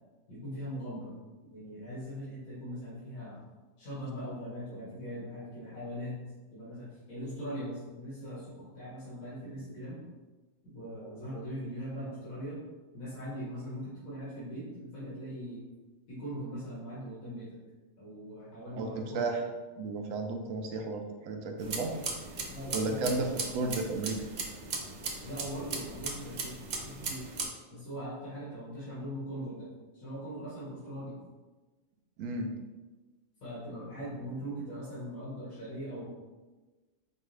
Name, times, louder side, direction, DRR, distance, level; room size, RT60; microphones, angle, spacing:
voice 1, 0.3-1.1 1.4-3.4 3.8-6.2 6.5-10.0 10.6-12.6 12.9-15.6 16.1-17.6 18.0-19.3 21.6-21.9 22.3-23.2 25.2-27.3 27.7-31.1 33.4-36.1, equal, 85° left, -10 dB, 1.9 m, -41 dB
voice 2, 18.7-19.4 19.8-21.9 22.7-24.2 32.2-32.5, right 3 dB, 75° right, 4 dB, 1.0 m, -33 dB
sound 1, 21.6-27.5, right 3 dB, 60° right, 0.4 m, -38 dB
5.1 x 2.3 x 3.2 m, 1.2 s
omnidirectional pair, 1.4 m